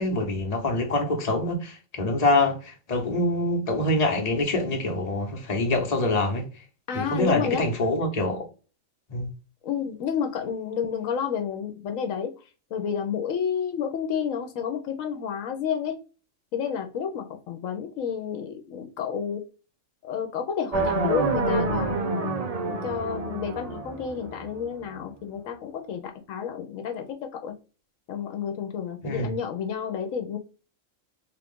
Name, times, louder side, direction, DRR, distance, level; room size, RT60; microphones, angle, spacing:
voice 1, 0.0-6.5 6.9-8.5 9.1-9.3 29.0-29.4, left 2 dB, 30° left, 1.0 m, -25 dB
voice 2, 6.9-7.6 9.6-12.3 12.7-15.9 16.5-19.4 20.0-22.3 22.7-26.0 26.3-27.5 28.1-30.4, left 7 dB, 80° left, 1.0 m, -30 dB
sound 1, 20.7-24.8, right 3 dB, 45° right, 0.5 m, -28 dB
3.4 x 2.4 x 3.5 m
omnidirectional pair, 1.4 m